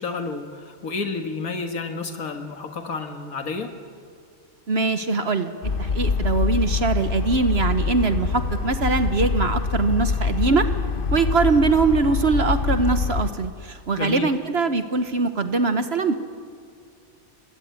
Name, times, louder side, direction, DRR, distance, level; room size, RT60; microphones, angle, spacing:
voice 1, 0.0-3.8 14.0-14.3, left 4 dB, 80° left, 5 dB, 2.1 m, -30 dB
voice 2, 4.7-5.5 5.8-10.7 11.1-16.1, right 4 dB, 50° right, 9 dB, 1.2 m, -22 dB
sound 1, 5.6-13.3, left 5 dB, 40° left, 1.1 m, -25 dB
25.0 x 20.0 x 9.5 m, 2.2 s
omnidirectional pair, 1.5 m